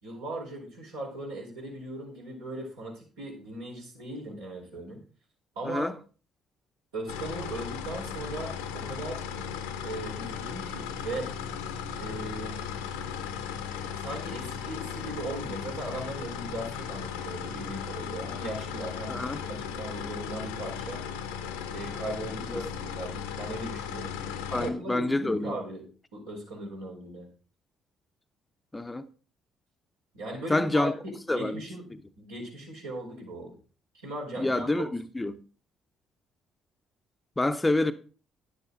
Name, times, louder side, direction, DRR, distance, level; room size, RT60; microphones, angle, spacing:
voice 1, 0.0-5.0 5.5-5.9 6.9-9.2 9.8-11.3 12.0-12.6 14.0-21.0 21.7-24.1 24.5-25.9 26.1-27.3 30.1-31.8 32.2-33.6 34.0-34.9, right 1 dB, 75° right, 4.4 m, -38 dB
sound 1, 7.1-24.7, left 7 dB, 75° left, 1.0 m, -36 dB
voice 2, 19.1-19.4 22.5-22.6 24.5-25.6 28.7-29.1 30.5-30.9 31.3-31.6 34.4-35.4 37.4-37.9, left 2 dB, 15° left, 0.8 m, -27 dB
10.5 x 9.9 x 3.9 m
figure-of-eight pair, 45°, 0 cm